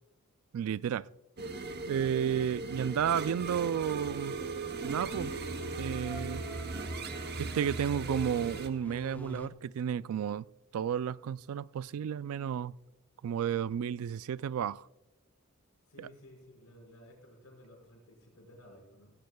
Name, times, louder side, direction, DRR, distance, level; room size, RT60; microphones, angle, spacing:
voice 1, 0.5-1.1 1.9-4.4 4.8-5.3 5.8-6.4 7.4-10.5 10.7-12.8 13.2-14.9 16.0-16.1, right 8 dB, 75° right, 0.3 m, -32 dB
sound 1, 1.4-8.7, right 3 dB, 45° right, 0.9 m, -38 dB
sound 2, 4.4-9.5, left 1 dB, 10° left, 0.6 m, -48 dB
voice 2, 15.9-19.1, left 1 dB, 85° left, 5.5 m, -55 dB
17.0 x 16.5 x 2.3 m
head